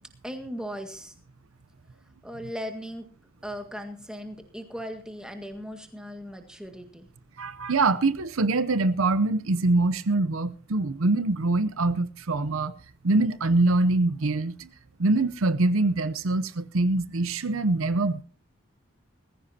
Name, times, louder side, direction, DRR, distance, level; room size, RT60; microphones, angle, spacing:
voice 1, 0.2-1.1 2.2-3.1 3.4-7.1, equal, 5° right, 1.8 m, -38 dB
voice 2, 7.4-12.7 13.0-14.7 15.0-18.2, right 2 dB, 75° right, 0.7 m, -24 dB
20.0 x 15.0 x 2.8 m
head